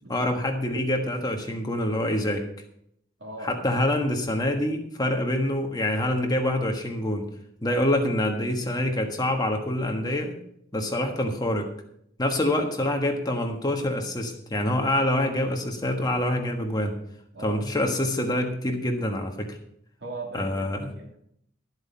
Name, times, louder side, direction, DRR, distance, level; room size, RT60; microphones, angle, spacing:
voice 1, 0.1-2.4 3.4-7.3 7.6-10.3 10.7-11.7 12.2-17.0 17.4-19.6 20.3-20.9, left 1 dB, 20° left, 3 dB, 1.4 m, -26 dB
voice 2, 3.2-3.5 11.0-11.1 17.3-17.6 20.0-21.2, right 2 dB, 65° right, 1 dB, 2.9 m, -39 dB
12.5 x 8.0 x 5.5 m, 0.71 s
head